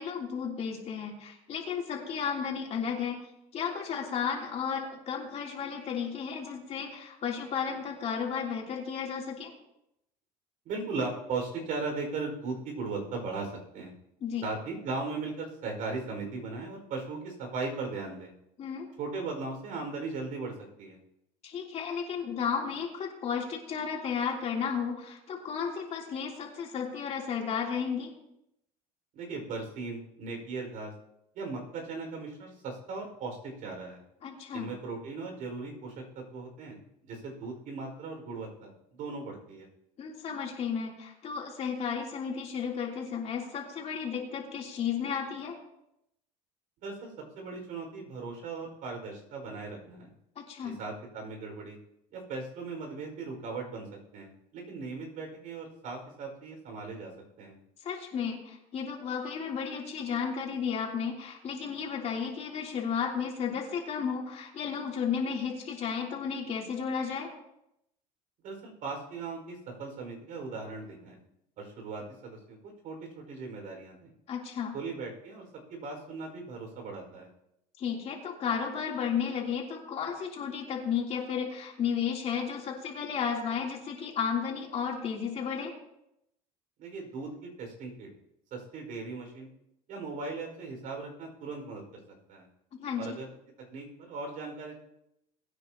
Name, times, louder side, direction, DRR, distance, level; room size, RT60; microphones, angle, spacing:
voice 1, 0.0-3.2 3.5-9.5 14.2-14.5 18.6-18.9 21.4-28.1 34.2-34.7 40.0-45.6 50.3-50.8 57.8-67.3 74.3-74.7 77.8-85.7 92.7-93.2, left 7 dB, 45° left, -1 dB, 3.2 m, -33 dB
voice 2, 10.6-13.9 14.4-18.3 19.0-21.0 29.1-30.9 31.3-34.0 34.5-39.7 46.8-50.1 50.6-51.8 52.1-53.9 54.1-57.1 57.4-57.6 68.4-71.2 71.6-74.1 74.7-77.3 86.8-88.1 88.5-89.5 89.9-92.0 92.3-92.5 93.0-93.3 93.7-94.8, right 3 dB, 60° right, 2 dB, 4.9 m, -38 dB
21.5 x 9.6 x 2.9 m, 0.81 s
cardioid pair, 120°, 15 cm